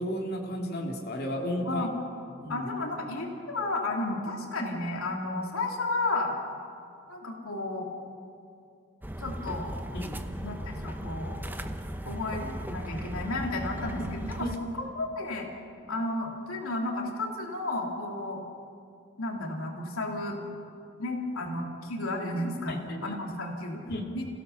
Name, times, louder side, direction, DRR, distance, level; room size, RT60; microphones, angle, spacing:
voice 1, 0.0-1.9 2.4-2.7 9.9-10.2 13.9-14.1 14.4-14.5 22.7-23.1 23.9-24.0, equal, 45° left, 0 dB, 2.6 m, -33 dB
voice 2, 1.6-1.9 2.5-6.3 7.1-7.9 9.2-9.7 10.4-11.4 12.0-14.5 14.8-15.5 15.9-18.4 19.2-20.4 21.0-23.8 24.1-24.3, left 2 dB, 80° left, 1 dB, 2.8 m, -32 dB
sound 1, 9.0-14.6, equal, 10° right, 0.8 m, -37 dB
28.5 x 16.5 x 7.0 m, 2.6 s
head